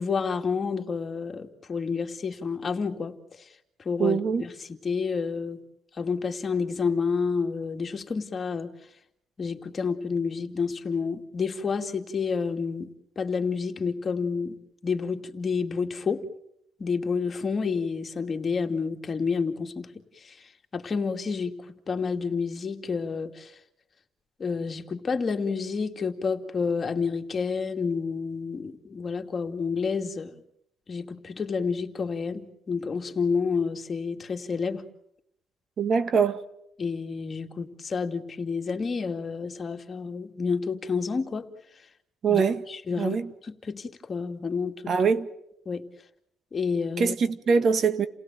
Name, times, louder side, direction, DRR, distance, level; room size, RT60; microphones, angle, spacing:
voice 1, 0.0-3.5 3.8-5.6 6.0-8.7 9.4-12.9 13.2-14.6 14.8-16.2 16.8-19.9 20.2-23.6 24.4-30.4 30.9-34.8 36.8-41.5 42.3-43.2 43.4-44.9 45.7-45.8 46.5-47.2, left 5 dB, 40° left, 2.4 m, -29 dB
voice 2, 4.0-4.5 35.8-36.4 42.2-42.6 43.0-43.3 44.9-45.3 47.0-48.1, right 5 dB, 55° right, 1.7 m, -23 dB
29.5 x 17.5 x 9.1 m
cardioid pair, 90°, 0 cm